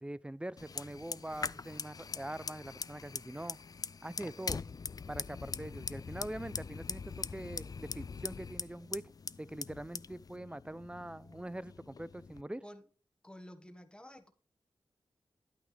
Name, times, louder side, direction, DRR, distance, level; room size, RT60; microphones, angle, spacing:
voice 1, 0.0-3.6 4.0-4.6 5.1-9.0 9.4-12.6, right 1 dB, 10° right, 0.5 m, -43 dB
Fire, 0.6-12.4, left 5 dB, 45° left, 0.3 m, -42 dB
voice 2, 13.2-14.3, equal, 10° left, 1.4 m, -51 dB
11.0 x 9.1 x 3.3 m
cardioid pair, 60°, 9 cm